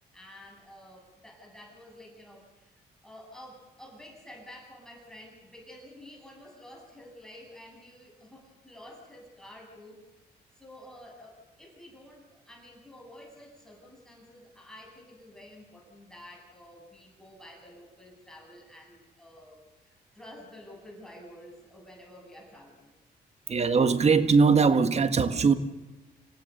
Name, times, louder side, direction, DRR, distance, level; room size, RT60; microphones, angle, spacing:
voice 1, 0.1-2.7 3.0-10.0 10.5-22.9, left 1 dB, 5° left, 7.9 m, -50 dB
voice 2, 23.5-25.5, right 5 dB, 40° right, 1.8 m, -21 dB
27.5 x 16.5 x 6.9 m
cardioid pair, 90°, 17 cm